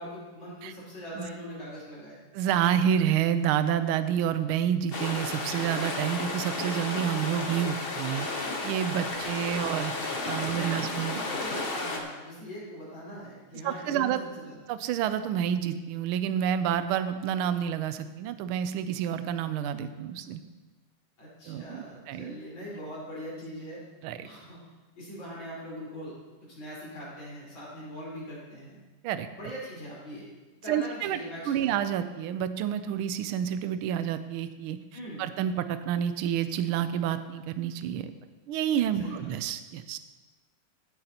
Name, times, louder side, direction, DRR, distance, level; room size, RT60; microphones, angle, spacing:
voice 1, 0.0-2.2 9.0-9.1 9.4-9.7 10.5-14.2 14.4-14.6 21.2-23.8 24.2-24.6 25.0-26.2 26.5-28.8 29.4-30.3 30.6-31.8 34.9-35.2 39.0-39.3, equal, 60° left, -7 dB, 5.2 m, -41 dB
voice 2, 2.3-9.9 10.2-11.2 13.6-14.2 14.7-20.4 21.4-22.3 24.0-24.3 29.0-29.3 30.7-31.2 31.5-34.8 35.2-38.1 38.5-40.0, right 9 dB, 80° right, 11 dB, 1.4 m, -29 dB
sound 1, 4.9-12.0, left 2 dB, 40° left, 0.8 m, -33 dB
15.5 x 9.1 x 2.9 m, 1.2 s
omnidirectional pair, 2.4 m